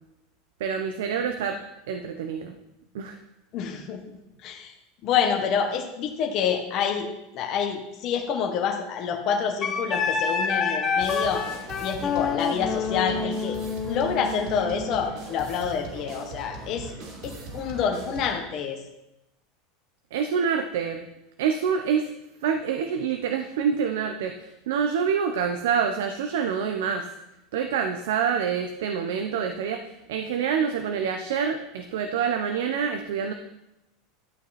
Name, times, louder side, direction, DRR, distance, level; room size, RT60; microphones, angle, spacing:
voice 1, 0.6-1.6 1.9-2.6 2.9-3.2 20.1-21.1 21.4-22.1 22.4-27.1 27.5-33.3, right 7 dB, 80° right, 6 dB, 1.0 m, -26 dB
voice 2, 3.5-4.0 4.4-4.7 5.0-7.1 7.3-11.4 11.8-13.6 13.9-16.9 17.2-18.8, left 7 dB, 35° left, 2 dB, 1.4 m, -27 dB
Wind instrument woodwind instrument, 9.6-15.0, left 5 dB, 20° left, 1.2 m, -28 dB
sound 1, 11.0-18.4, right 2 dB, 50° right, 2.8 m, -40 dB
12.5 x 8.4 x 4.3 m, 0.93 s
supercardioid pair, 165°, 0 cm